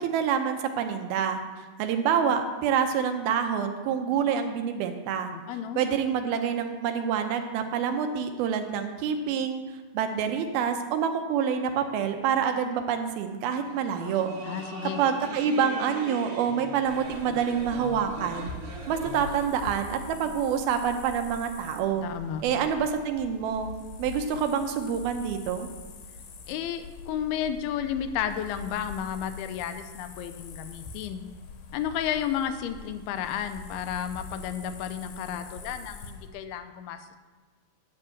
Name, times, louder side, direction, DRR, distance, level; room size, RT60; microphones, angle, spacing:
voice 1, 0.0-1.4 1.8-5.3 5.8-9.6 9.9-14.3 15.0-18.5 18.9-22.1 22.4-23.7 24.0-25.7, right 7 dB, 80° right, 6 dB, 2.7 m, -27 dB
voice 2, 5.3-5.8 14.4-15.0 22.0-22.5 26.5-31.2 31.7-37.2, left 9 dB, 85° left, 9 dB, 2.6 m, -32 dB
sound 1, 13.6-19.5, right 2 dB, 45° right, 2.5 m, -41 dB
sound 2, 16.9-36.3, left 4 dB, 70° left, 2.4 m, -44 dB
9.9 x 6.2 x 7.8 m, 1.3 s
omnidirectional pair, 4.4 m